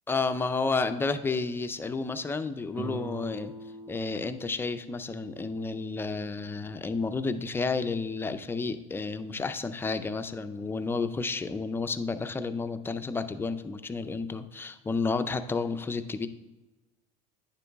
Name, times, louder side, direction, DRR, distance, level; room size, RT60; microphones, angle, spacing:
voice 1, 0.1-3.5 3.9-16.3, left 4 dB, 15° left, 9 dB, 0.4 m, -31 dB
sound 1, 2.7-6.3, right 3 dB, 35° right, 2.6 m, -43 dB
9.3 x 6.9 x 3.4 m, 1.1 s
cardioid pair, 135°, 17 cm